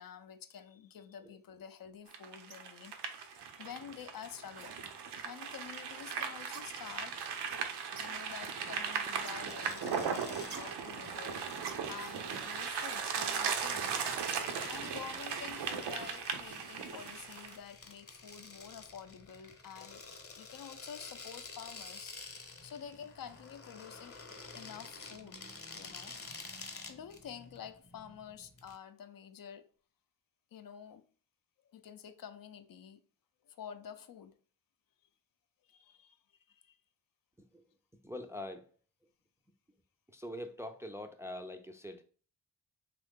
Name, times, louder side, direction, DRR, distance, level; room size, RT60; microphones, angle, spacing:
voice 1, 0.0-4.8 5.2-7.2 7.6-11.4 11.9-20.0 20.3-24.2 24.5-25.4 25.7-26.1 26.8-29.7 30.5-31.0 31.6-33.0 33.4-34.3 35.6-36.2 36.5-36.8, left 8 dB, 55° left, 0.5 m, -49 dB
sound 1, 2.1-17.6, right 6 dB, 75° right, 0.6 m, -38 dB
sound 2, 9.5-28.8, left 3 dB, 35° left, 0.9 m, -50 dB
voice 2, 38.0-38.7 40.1-42.0, left 1 dB, 5° right, 0.4 m, -44 dB
2.7 x 2.5 x 3.6 m
supercardioid pair, 45°, 41 cm